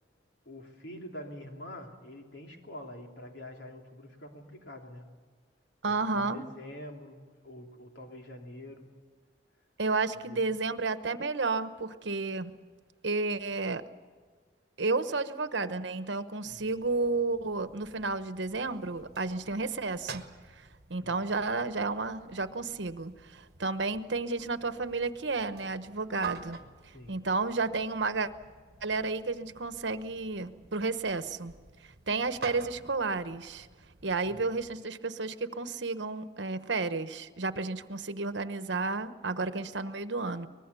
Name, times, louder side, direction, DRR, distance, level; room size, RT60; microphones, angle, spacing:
voice 1, 0.4-5.1 5.8-8.9 10.3-10.4 16.4-16.6 21.0-21.1 26.9-27.2 34.2-34.4, left 1 dB, 75° left, 2 dB, 3.2 m, -46 dB
voice 2, 5.8-6.5 9.8-12.6 13.0-13.9 14.8-20.2 20.9-26.6 27.1-28.3 28.8-31.5 32.1-33.7 34.0-40.5, right 3 dB, 75° right, 11 dB, 1.1 m, -32 dB
sound 1, 16.4-34.8, right 6 dB, 55° right, 1.4 m, -49 dB
24.0 x 20.5 x 7.0 m, 1.5 s
head